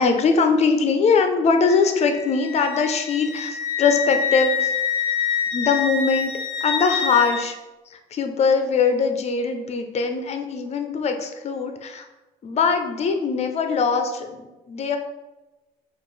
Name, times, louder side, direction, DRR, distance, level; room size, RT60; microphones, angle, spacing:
voice 1, 0.0-4.7 5.5-6.3 6.6-7.6 7.9-12.1 12.4-15.0, left 5 dB, 40° left, 6 dB, 0.6 m, -21 dB
Wind instrument woodwind instrument, 1.7-7.5, left 7 dB, 85° left, 0.5 m, -26 dB
4.6 x 2.5 x 4.0 m, 1.1 s
cardioid pair, 110°, 17 cm